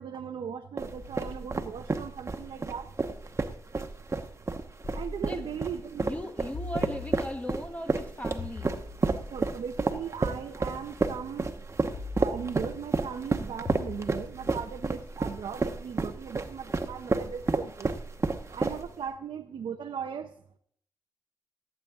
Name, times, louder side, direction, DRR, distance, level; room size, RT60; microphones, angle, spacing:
voice 1, 0.0-2.9 4.9-6.0 9.3-11.5 12.2-17.9 18.5-20.3, right 7 dB, 90° right, 4 dB, 0.7 m, -38 dB
sound 1, 0.8-19.1, right 3 dB, 35° right, 1.0 m, -30 dB
sound 2, 0.9-3.7 4.8-5.9 6.5-7.7 8.4-10.6 11.9-13.0 13.7-15.8, left 3 dB, 40° left, 2.5 m, -44 dB
voice 2, 6.0-8.7, equal, 15° left, 5 dB, 1.1 m, -38 dB
17.5 x 8.3 x 3.6 m, 0.64 s
cardioid pair, 80°, 8 cm